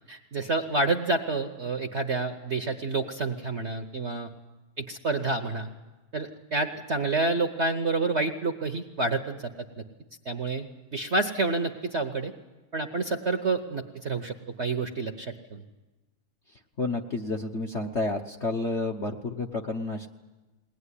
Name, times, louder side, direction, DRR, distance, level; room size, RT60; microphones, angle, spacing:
voice 1, 0.1-4.3 4.8-5.7 6.1-9.5 10.2-12.3 12.7-15.6, right 3 dB, 45° right, 5 dB, 0.9 m, -28 dB
voice 2, 16.8-20.1, left 2 dB, 45° left, 3 dB, 0.9 m, -30 dB
21.5 x 18.5 x 9.9 m, 1.2 s
omnidirectional pair, 2.3 m